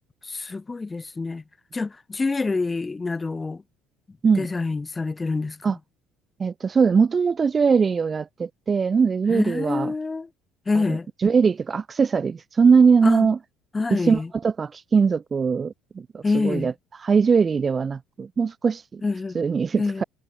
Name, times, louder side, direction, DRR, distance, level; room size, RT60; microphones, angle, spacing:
voice 1, 0.2-1.4 1.7-3.6 4.4-5.6 9.3-10.3 10.7-11.1 13.0-13.3 13.7-14.3 16.2-16.7 19.0-19.4 19.8-20.0, left 3 dB, 20° left, 3.0 m, -26 dB
voice 2, 6.4-9.9 10.8-13.4 13.9-16.7 17.0-19.0 19.3-20.0, right 5 dB, 35° right, 6.8 m, -21 dB
hypercardioid pair, 65°, 0 cm